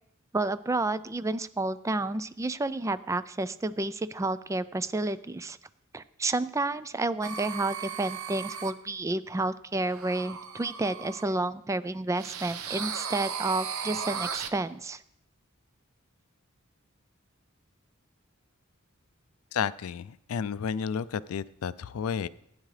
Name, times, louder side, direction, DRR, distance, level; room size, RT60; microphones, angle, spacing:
voice 1, 0.3-5.6 5.9-15.0, right 2 dB, 15° right, 14 dB, 0.3 m, -30 dB
sound 1, 7.2-8.7 9.8-11.2 12.2-14.5, right 6 dB, 90° right, 0.8 m, -36 dB
voice 2, 19.5-22.3, left 7 dB, 80° left, 18 dB, 0.4 m, -32 dB
16.0 x 9.5 x 3.3 m, 0.77 s
head